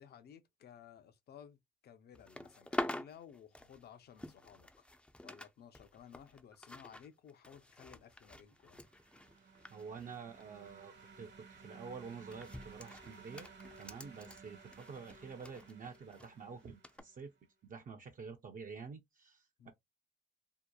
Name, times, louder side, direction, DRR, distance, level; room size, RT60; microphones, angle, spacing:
voice 1, 0.0-4.9 5.2-8.9 19.6-19.7, left 8 dB, 55° left, 0.6 m, -57 dB
sound 1, 2.1-5.5 5.7-10.7 11.0-11.3 12.0-16.3 16.8-17.0, left 1 dB, 5° left, 0.4 m, -46 dB
sound 2, 8.6-17.2, right 4 dB, 60° right, 1.1 m, -57 dB
voice 2, 9.7-13.5 13.8-17.3 17.6-19.7, right 5 dB, 45° right, 0.5 m, -49 dB
2.8 x 2.1 x 2.2 m
cardioid pair, 90°, 20 cm